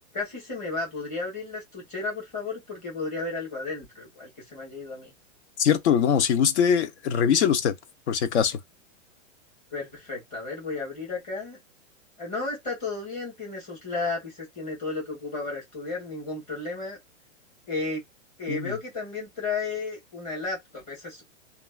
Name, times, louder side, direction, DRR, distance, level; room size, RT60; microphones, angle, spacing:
voice 1, 0.1-5.1 9.7-11.6 12.2-17.0 17.7-18.0 18.4-21.2, left 3 dB, 20° left, 1.4 m, -33 dB
voice 2, 5.6-7.7 8.1-8.6 18.5-18.8, left 8 dB, 55° left, 0.6 m, -22 dB
3.0 x 2.4 x 2.3 m
supercardioid pair, 170°, 41 cm